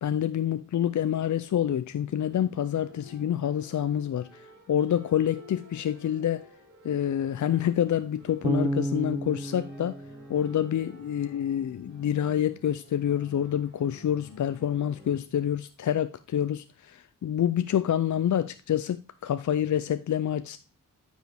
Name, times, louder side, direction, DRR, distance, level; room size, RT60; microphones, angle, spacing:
voice 1, 0.0-6.5 6.8-10.0 10.3-20.6, left 10 dB, 65° left, 0.5 m, -27 dB
sound 1, 1.9-15.2, left 1 dB, 40° right, 3.5 m, -52 dB
Bass guitar, 8.4-11.5, right 1 dB, 15° right, 0.9 m, -32 dB
9.4 x 6.2 x 3.5 m
wide cardioid pair, 85°, 32 cm